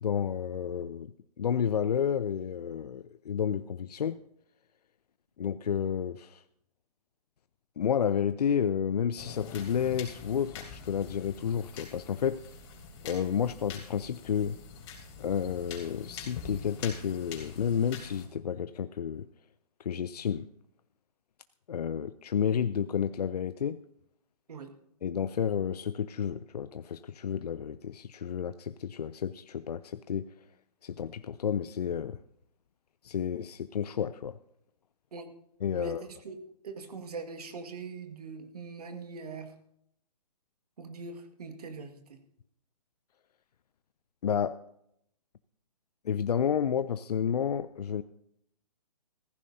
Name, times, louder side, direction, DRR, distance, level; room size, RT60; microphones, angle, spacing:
voice 1, 0.0-4.2 5.4-6.4 7.8-12.4 13.0-14.6 15.2-19.3 19.8-20.5 21.7-23.8 25.0-30.3 30.8-32.2 33.0-34.4 35.6-36.0 44.2-44.6 46.0-48.0, left 8 dB, 75° left, 13 dB, 0.5 m, -31 dB
sound 1, 9.2-18.3, left 6 dB, 40° left, 3.5 m, -45 dB
voice 2, 35.7-36.4 36.6-39.5 40.8-42.2, right 4 dB, 70° right, 7 dB, 1.8 m, -42 dB
15.0 x 15.0 x 2.7 m, 0.74 s
hypercardioid pair, 135°, 21 cm